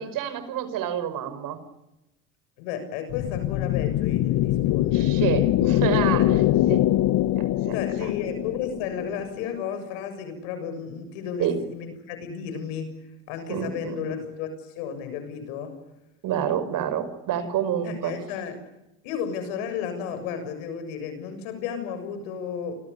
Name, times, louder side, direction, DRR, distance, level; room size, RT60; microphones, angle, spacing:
voice 1, 0.0-1.6 4.9-6.4 6.7-6.9 7.4-8.1 11.4-11.6 13.5-14.0 16.2-18.1, right 9 dB, 60° right, 12 dB, 5.7 m, -28 dB
voice 2, 2.6-5.2 6.2-6.3 7.7-15.8 17.8-18.5 19.0-22.9, left 7 dB, 75° left, 10 dB, 7.2 m, -33 dB
sound 1, 3.1-9.6, left 14 dB, 60° left, 1.3 m, -23 dB
30.0 x 25.0 x 7.0 m, 0.93 s
hypercardioid pair, 75°, 38 cm